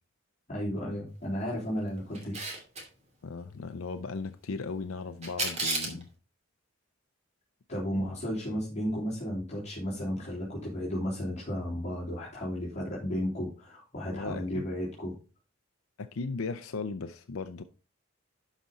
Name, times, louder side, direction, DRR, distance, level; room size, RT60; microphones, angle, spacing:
voice 1, 0.5-2.4 7.7-15.1, equal, 35° left, 3.4 m, -33 dB
Camera, 2.1-2.8 5.2-6.0, right 2 dB, 35° right, 2.6 m, -32 dB
voice 2, 3.2-6.1 14.1-14.6 16.0-17.6, left 4 dB, 90° left, 0.6 m, -37 dB
11.5 x 5.1 x 4.1 m
head